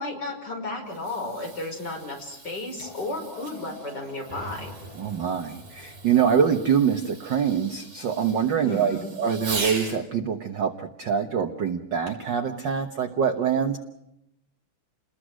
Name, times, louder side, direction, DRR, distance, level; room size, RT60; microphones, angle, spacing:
voice 1, 0.0-4.7 8.6-9.1, left 2 dB, 30° left, 2 dB, 5.8 m, -33 dB
Fireworks, 0.7-10.0 12.1-12.4 13.1-13.2, right 4 dB, 80° right, 7.4 m, -40 dB
sound 1, 2.8-8.7 9.8-9.9, left 7 dB, 75° left, 5.6 m, -50 dB
sound 2, 4.3-7.9, right 1 dB, 15° right, 2.5 m, -46 dB
voice 2, 5.0-13.8, right 7 dB, 55° right, 7 dB, 1.3 m, -24 dB
29.5 x 21.0 x 6.3 m, 0.81 s
omnidirectional pair, 3.5 m